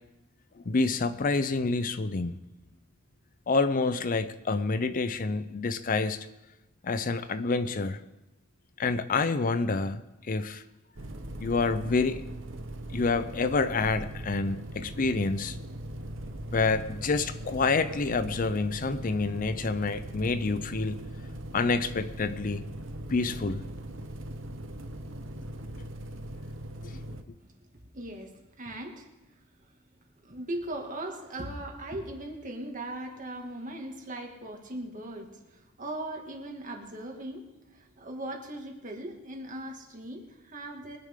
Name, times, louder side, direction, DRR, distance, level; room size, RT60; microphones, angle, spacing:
voice 1, 0.6-2.4 3.5-6.3 6.8-8.0 8.8-10.0 10.3-10.6 11.4-12.2 12.9-15.6 16.5-21.0 21.5-22.6 23.1-23.7 26.8-27.0, left 3 dB, 45° left, 0.5 m, -28 dB
sound 1, 11.0-27.2, right 1 dB, 70° right, 1.0 m, -40 dB
voice 2, 27.9-29.7 30.2-41.0, right 1 dB, 40° right, 2.2 m, -39 dB
23.0 x 9.8 x 3.7 m
head